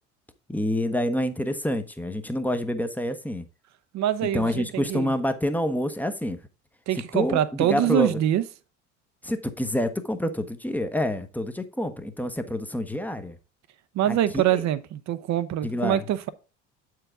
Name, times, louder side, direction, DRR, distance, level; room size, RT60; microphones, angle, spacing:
voice 1, 0.5-3.4 4.3-6.4 6.9-8.2 9.2-13.4 14.0-14.6 15.6-16.1, left 1 dB, 5° left, 0.9 m, -27 dB
voice 2, 3.9-5.1 6.9-8.4 13.9-16.3, right 11 dB, 50° right, 0.8 m, -24 dB
7.7 x 4.8 x 3.6 m
hypercardioid pair, 65°, 36 cm